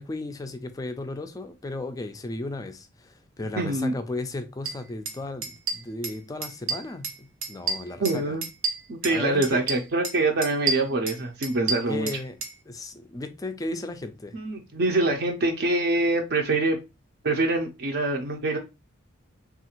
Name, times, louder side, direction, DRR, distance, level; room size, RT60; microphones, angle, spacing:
voice 1, 0.0-8.4 9.1-9.6 11.9-12.4 12.7-14.4, left 2 dB, 15° left, 0.3 m, -35 dB
voice 2, 3.6-4.0 8.0-8.4 8.9-12.1 14.3-16.8 17.2-18.6, right 2 dB, 55° right, 0.5 m, -25 dB
sound 1, 4.7-4.8 5.1-5.2 5.4-6.2 6.4-7.2 7.4-9.2 9.4-10.2 10.4-12.5, right 4 dB, 90° right, 0.7 m, -29 dB
3.5 x 2.4 x 2.9 m
head